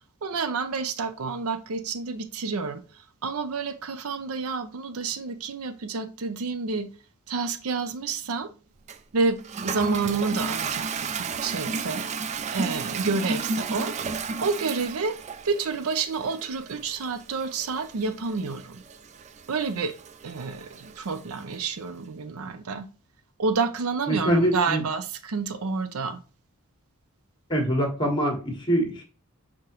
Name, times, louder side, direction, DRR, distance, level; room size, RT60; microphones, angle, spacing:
voice 1, 0.2-2.8 3.2-6.9 7.3-8.5 9.1-14.0 14.4-15.2 15.4-18.8 19.5-19.9 20.2-22.9 23.4-26.2, right 4 dB, 85° right, 0.5 m, -29 dB
Toilet flush, 8.9-21.7, right 4 dB, 30° right, 0.3 m, -34 dB
voice 2, 24.1-24.8 27.5-29.0, equal, 20° left, 1.4 m, -24 dB
4.8 x 3.6 x 3.0 m
head